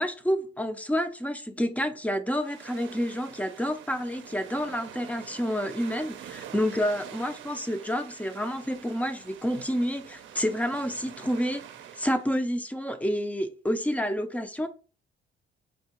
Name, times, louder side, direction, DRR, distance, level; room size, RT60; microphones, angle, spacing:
voice 1, 0.0-11.7 12.0-14.7, equal, 5° left, 0.5 m, -29 dB
sound 1, 2.3-12.3, right 10 dB, 75° right, 0.5 m, -46 dB
4.5 x 2.8 x 3.0 m
cardioid pair, 90°, 20 cm